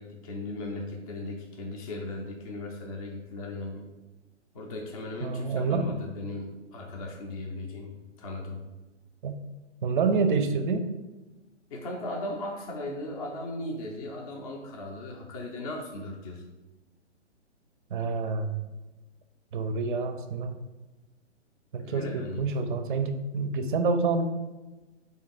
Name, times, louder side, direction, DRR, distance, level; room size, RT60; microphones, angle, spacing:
voice 1, 0.0-3.9 4.5-8.7 11.7-16.4 21.8-22.5, left 2 dB, 30° left, 0 dB, 0.4 m, -37 dB
voice 2, 5.2-5.9 9.2-9.4 9.8-10.9 17.9-18.6 19.5-20.6 21.7-24.2, right 4 dB, 45° right, 8 dB, 0.4 m, -27 dB
3.3 x 2.7 x 3.8 m, 1.1 s
figure-of-eight pair, 130°, 36 cm